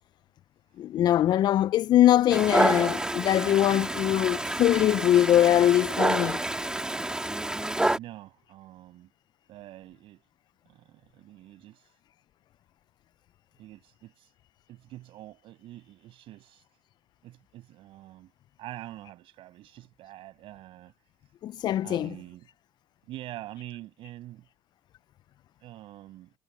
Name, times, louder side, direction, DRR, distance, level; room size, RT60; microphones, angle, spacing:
voice 1, 0.8-6.4 21.4-22.2, left 12 dB, 45° left, 0.4 m, -22 dB
Dog, 2.3-8.0, right 1 dB, 10° right, 2.5 m, -28 dB
voice 2, 8.0-9.1 9.5-10.2 10.7-12.0 13.6-14.3 14.7-16.7 17.2-18.3 18.6-20.9 21.8-22.5 23.1-24.4 25.6-26.3, right 15 dB, 60° right, 6.3 m, -45 dB
supercardioid pair, 95°, 10 cm